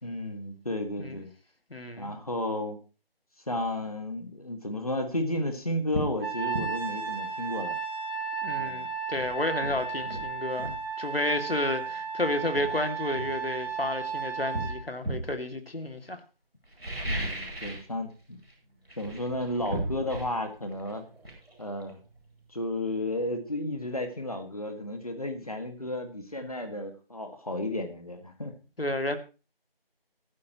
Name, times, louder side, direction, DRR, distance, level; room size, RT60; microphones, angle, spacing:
voice 1, 0.0-1.3 2.0-2.8 3.5-7.8 8.5-8.9 10.1-10.2 17.0-18.4 19.0-21.0 21.6-22.0 22.5-28.5, left 1 dB, 40° left, 1.9 m, -33 dB
voice 2, 1.7-2.1 8.4-16.2 28.8-29.2, left 1 dB, 75° left, 2.5 m, -31 dB
sound 1, 5.2-5.3 5.9-6.2 6.5-6.7 8.6-8.7 9.1-10.8 11.9-12.0 12.5-13.9 14.5-15.3 16.6-17.9 18.2-18.5 18.8-22.4 22.7-22.8, right 1 dB, ahead, 3.6 m, -36 dB
Trumpet, 6.2-14.8, right 6 dB, 25° right, 5.2 m, -34 dB
15.5 x 14.0 x 3.0 m
figure-of-eight pair, 175°, 30 cm